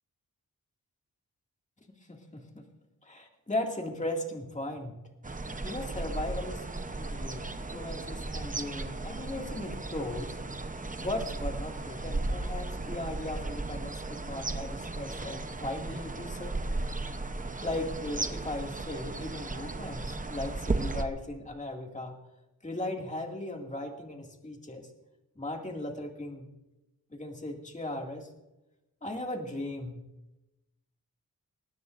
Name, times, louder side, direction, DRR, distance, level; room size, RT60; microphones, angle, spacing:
voice 1, 2.1-2.6 3.0-4.9 5.6-6.6 6.9-10.4 11.0-16.6 17.6-22.1 22.6-24.9 25.4-26.5 27.1-28.3 29.0-30.0, left 1 dB, 20° left, 1 dB, 2.3 m, -37 dB
sound 1, 5.2-21.0, right 2 dB, 20° right, 0.9 m, -35 dB
21.5 x 18.0 x 2.6 m, 0.96 s
wide cardioid pair, 120°, 35 cm